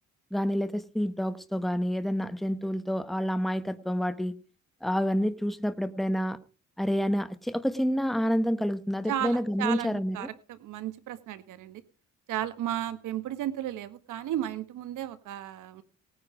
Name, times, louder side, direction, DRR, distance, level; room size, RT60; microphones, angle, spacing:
voice 1, 0.3-4.3 4.8-6.4 6.8-10.3, equal, ahead, 1.3 m, -28 dB
voice 2, 9.1-11.8 12.3-15.8, right 12 dB, 85° right, 1.7 m, -34 dB
18.5 x 10.0 x 5.1 m
cardioid pair, 90°, 30 cm